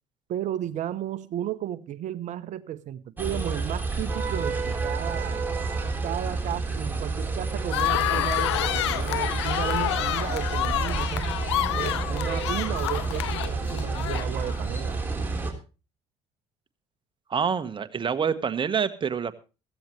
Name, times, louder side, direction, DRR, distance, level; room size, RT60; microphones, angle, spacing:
voice 1, 0.3-5.4 6.0-11.3 11.8-15.0, right 12 dB, 60° right, 0.9 m, -34 dB
sound 1, 3.2-15.5, right 4 dB, 15° right, 3.8 m, -29 dB
sound 2, 7.7-14.6, left 14 dB, 90° left, 0.7 m, -28 dB
voice 2, 17.3-19.4, right 6 dB, 35° right, 1.4 m, -27 dB
16.0 x 15.0 x 3.2 m
hypercardioid pair, 60°, 14 cm